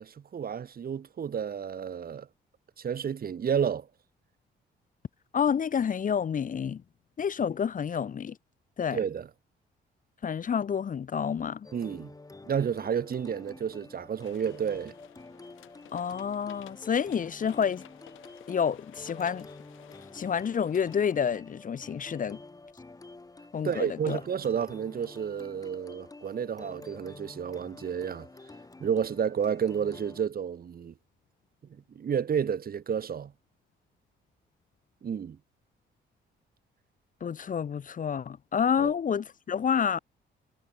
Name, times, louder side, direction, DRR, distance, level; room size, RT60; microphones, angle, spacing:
voice 1, 0.0-2.3 2.8-3.9 8.9-9.3 11.7-12.1 12.4-14.9 23.6-28.3 28.8-30.9 31.7-33.3 35.0-35.4 38.8-38.9, right 7 dB, 50° right, 1.9 m, -31 dB
voice 2, 5.3-6.8 7.2-8.4 8.8-9.0 10.2-11.7 15.9-17.8 18.5-19.5 20.1-22.4 23.5-24.2 37.2-40.0, left 7 dB, 40° left, 0.9 m, -29 dB
sound 1, 11.6-30.3, left 3 dB, 20° left, 2.2 m, -49 dB
sound 2, 14.2-20.9, left 15 dB, 90° left, 4.9 m, -55 dB
cardioid pair, 90°, 20 cm